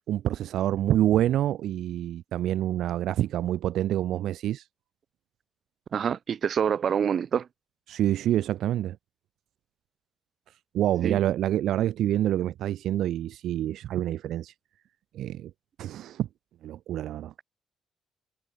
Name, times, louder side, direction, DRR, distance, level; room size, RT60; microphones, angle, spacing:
voice 1, 0.1-4.6 7.9-9.0 10.7-14.5 15.1-15.5 15.8-16.3 16.6-17.3, right 12 dB, 80° right, 1.5 m, -27 dB
voice 2, 5.9-7.5 11.0-11.2, right 7 dB, 55° right, 2.3 m, -26 dB
cardioid pair, 90°, 0 cm